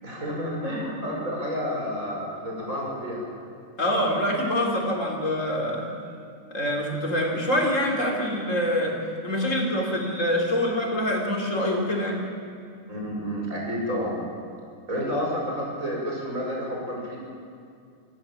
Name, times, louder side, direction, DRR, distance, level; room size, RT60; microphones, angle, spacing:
voice 1, 0.0-3.2 12.9-14.2 14.9-17.2, equal, 80° right, -2 dB, 6.5 m, -30 dB
voice 2, 3.8-5.9 6.5-8.9 9.2-12.2, left 1 dB, 70° left, -1 dB, 4.2 m, -25 dB
26.5 x 16.0 x 7.3 m, 2.3 s
omnidirectional pair, 1.4 m